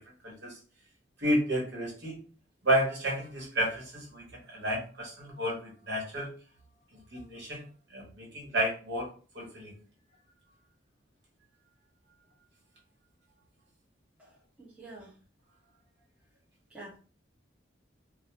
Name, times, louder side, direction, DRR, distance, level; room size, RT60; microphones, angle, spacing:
voice 1, 0.2-0.6 1.2-2.2 2.6-6.3 6.9-7.6 7.9-9.1 9.3-9.7, equal, 65° right, -2 dB, 0.9 m, -31 dB
voice 2, 14.2-15.2 16.7-17.0, right 2 dB, 5° right, -7 dB, 0.7 m, -48 dB
2.2 x 2.1 x 2.8 m, 0.38 s
head